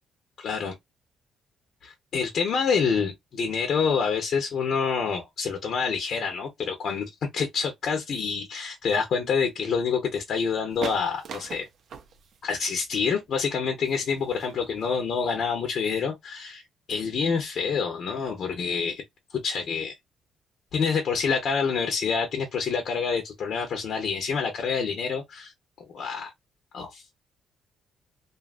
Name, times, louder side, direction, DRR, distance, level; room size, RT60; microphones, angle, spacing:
voice 1, 0.4-0.8 1.8-11.7 12.4-16.6 16.9-19.0 19.4-19.9 20.7-25.5 25.9-26.3 26.7-27.0, left 5 dB, 60° left, 0.8 m, -27 dB
sound 1, 10.7-15.9, right 7 dB, 65° right, 0.5 m, -41 dB
2.7 x 2.4 x 2.4 m
cardioid pair, 90°, 0 cm